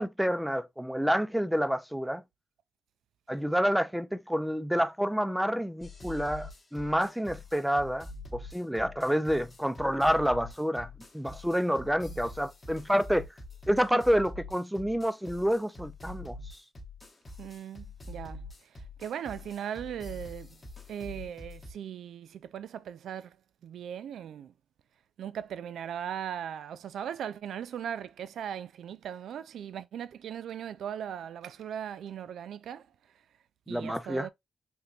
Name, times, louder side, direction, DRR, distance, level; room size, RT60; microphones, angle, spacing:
voice 1, 0.0-2.2 3.3-13.3 13.7-16.4 33.7-34.3, equal, ahead, 0.4 m, -28 dB
sound 1, 5.8-21.7, left 2 dB, 30° left, 0.9 m, -45 dB
voice 2, 17.4-20.6 20.9-23.4 23.6-24.5 25.2-32.9 33.7-34.3, right 9 dB, 85° right, 0.3 m, -38 dB
3.6 x 2.9 x 2.6 m
cardioid pair, 115°, 0 cm